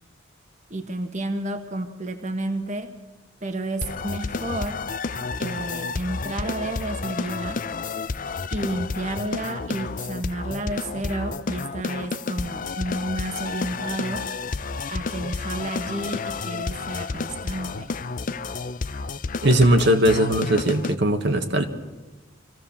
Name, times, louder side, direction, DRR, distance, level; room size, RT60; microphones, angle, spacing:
voice 1, 0.7-3.0 3.4-4.8 5.4-7.7 8.5-14.3 14.9-17.9, right 1 dB, 35° right, 6 dB, 1.4 m, -31 dB
sound 1, 3.8-21.0, left 4 dB, 40° left, 0.5 m, -31 dB
voice 2, 19.4-21.6, right 1 dB, 55° right, 5 dB, 1.5 m, -19 dB
25.5 x 15.5 x 7.1 m, 1.2 s
head